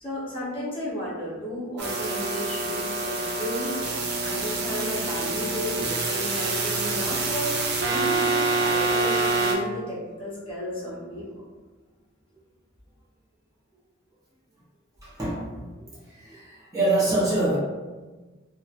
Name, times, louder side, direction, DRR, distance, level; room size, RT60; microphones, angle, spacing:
voice 1, 0.0-11.4, equal, 25° left, -7 dB, 0.7 m, -33 dB
sound 1, 1.8-9.5, right 3 dB, 55° right, 0.5 m, -26 dB
voice 2, 15.0-15.7 16.2-17.6, right 2 dB, 15° right, -8 dB, 0.7 m, -25 dB
2.9 x 2.1 x 2.3 m, 1.3 s
head